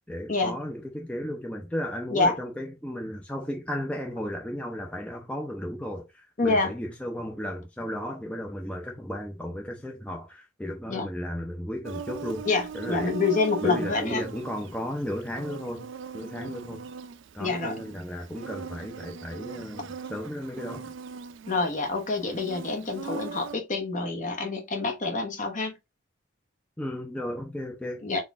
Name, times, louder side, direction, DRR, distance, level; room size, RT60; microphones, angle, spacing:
voice 1, 0.1-12.4 12.7-13.1 13.6-16.9 17.3-20.9 26.8-28.2, equal, 5° left, 0.6 m, -34 dB
voice 2, 6.4-6.7 10.9-11.1 12.4-14.2 17.4-17.8 21.5-25.7 28.0-28.2, left 3 dB, 40° left, 1.0 m, -27 dB
Insect, 11.8-23.5, right 6 dB, 65° right, 0.4 m, -40 dB
4.0 x 2.4 x 3.5 m
head